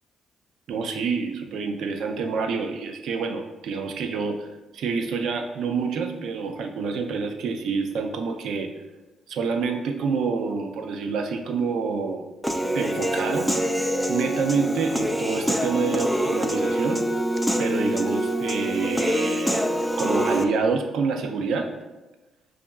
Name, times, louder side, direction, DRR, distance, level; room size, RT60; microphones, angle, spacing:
voice 1, 0.7-4.5 4.7-8.7 9.3-12.3 12.7-13.5 14.1-17.0 17.6-19.6 20.0-21.7, right 5 dB, 75° right, 5 dB, 0.4 m, -27 dB
Human voice / Piano, 12.4-20.4, equal, ahead, 0.3 m, -25 dB
5.1 x 2.4 x 2.2 m, 1.1 s
cardioid pair, 75°, 0 cm